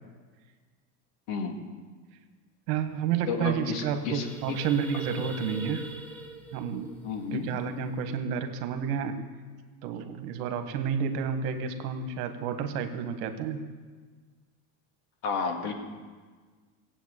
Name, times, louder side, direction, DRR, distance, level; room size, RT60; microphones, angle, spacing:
voice 1, 2.7-5.9 6.5-6.9 7.3-9.2 9.8-13.7, right 7 dB, 70° right, 7 dB, 1.7 m, -30 dB
sound 1, 2.8-2.9 3.1-3.4 3.7-8.1, right 2 dB, 5° left, 1.1 m, -43 dB
voice 2, 3.3-4.6 7.0-7.5 15.2-15.7, left 5 dB, 65° left, 3 dB, 2.6 m, -31 dB
17.0 x 8.4 x 8.2 m, 1.5 s
supercardioid pair, 155°, 49 cm